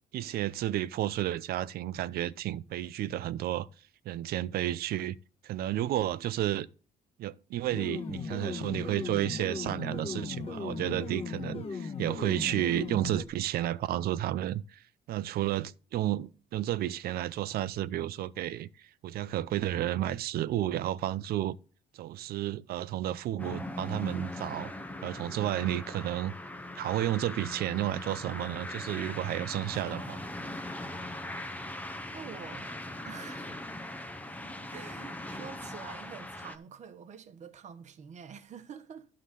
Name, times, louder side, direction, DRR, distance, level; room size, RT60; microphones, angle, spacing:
voice 1, 0.1-3.7 4.1-5.2 5.4-6.7 7.2-21.6 21.9-24.7 25.0-26.3 26.8-30.2, right 13 dB, 65° right, 0.5 m, -32 dB
sound 1, 7.7-13.3, left 5 dB, 35° left, 1.2 m, -37 dB
sound 2, 23.4-36.6, left 1 dB, 10° left, 0.7 m, -40 dB
voice 2, 32.1-32.8 33.1-33.6 34.7-39.1, right 7 dB, 45° right, 1.1 m, -47 dB
11.5 x 3.8 x 6.7 m
cardioid pair, 110°, 17 cm